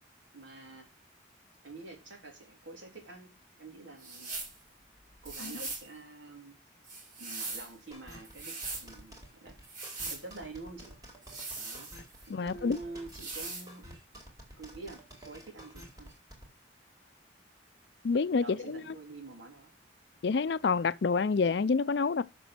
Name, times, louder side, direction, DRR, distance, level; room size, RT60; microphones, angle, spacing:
voice 1, 0.3-0.9 1.6-4.4 5.2-6.6 7.2-9.6 10.1-11.0 11.6-11.9 12.3-13.9 14.6-16.1 18.3-19.7, right 3 dB, 85° right, 3.4 m, -47 dB
sound 1, 4.0-4.6 5.2-5.9 6.8-7.7 8.2-8.9 9.6-10.2 11.2-12.3 13.1-13.7, right 3 dB, 45° right, 3.0 m, -40 dB
sound 2, 7.9-16.5, equal, 20° right, 2.7 m, -50 dB
voice 2, 12.3-12.8 18.0-18.9 20.2-22.2, left 4 dB, 60° left, 0.5 m, -28 dB
7.1 x 6.1 x 6.1 m
head